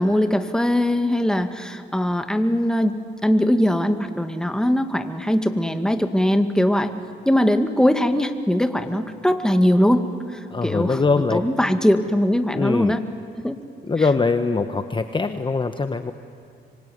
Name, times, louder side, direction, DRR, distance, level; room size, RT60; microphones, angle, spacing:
voice 1, 0.0-2.9 3.2-6.9 7.3-13.0 13.4-13.6 14.0-14.1, equal, 5° left, 7 dB, 2.0 m, -21 dB
voice 2, 10.5-11.4 12.5-13.0 13.9-16.1, left 4 dB, 25° left, 8 dB, 1.2 m, -22 dB
26.0 x 24.5 x 9.5 m, 2.3 s
cardioid pair, 90°, 20 cm